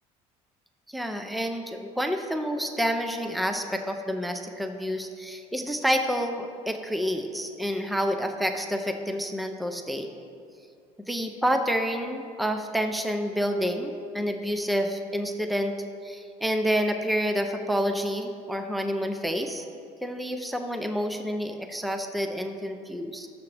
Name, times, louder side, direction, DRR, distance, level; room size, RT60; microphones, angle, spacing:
voice 1, 0.9-10.1 11.1-15.7 16.0-19.6 20.0-23.3, equal, ahead, 6 dB, 0.6 m, -28 dB
19.0 x 7.1 x 3.4 m, 2.4 s
cardioid pair, 150°, 13 cm